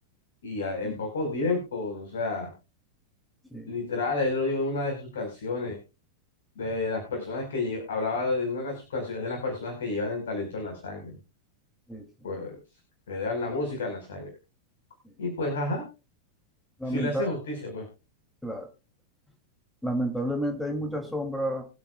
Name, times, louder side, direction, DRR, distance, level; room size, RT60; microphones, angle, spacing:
voice 1, 0.4-2.5 3.7-5.8 6.5-11.2 12.2-12.6 13.1-14.3 15.2-15.8 16.8-17.8, left 3 dB, 65° left, 2 dB, 4.8 m, -30 dB
voice 2, 16.8-17.3 18.4-18.7 19.8-21.6, right 1 dB, 5° left, 3 dB, 2.8 m, -30 dB
24.5 x 8.8 x 2.3 m, 0.30 s
figure-of-eight pair, 90°, 0 cm